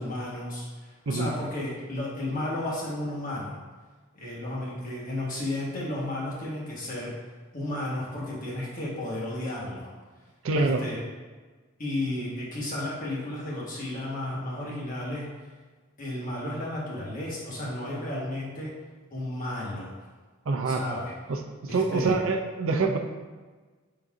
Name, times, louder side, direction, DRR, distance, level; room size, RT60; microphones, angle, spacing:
voice 1, 0.0-3.5 4.1-7.1 7.5-9.9 10.5-11.0 11.8-15.3 16.0-18.7 19.1-19.9 20.7-21.1 21.9-22.2, left 1 dB, 45° left, -5 dB, 1.2 m, -33 dB
voice 2, 10.4-10.8 20.5-20.8 21.3-21.4 21.7-23.0, right 3 dB, 75° right, 4 dB, 0.5 m, -25 dB
3.9 x 2.6 x 4.7 m, 1.4 s
head